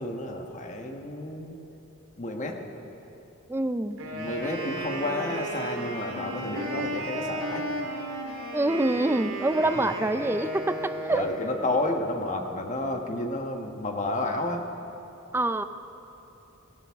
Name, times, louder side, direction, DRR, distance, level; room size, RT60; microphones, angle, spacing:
voice 1, 0.0-1.6 2.2-2.6 4.1-7.6 9.8-9.9 10.8-14.6, left 2 dB, 35° left, 3 dB, 1.2 m, -31 dB
voice 2, 3.5-4.0 8.5-11.3 15.3-15.6, right 2 dB, 10° right, 11 dB, 0.4 m, -26 dB
Wind instrument woodwind instrument, 3.9-11.6, right 1 dB, 70° right, 2.7 m, -34 dB
18.0 x 17.5 x 3.6 m, 2.9 s
head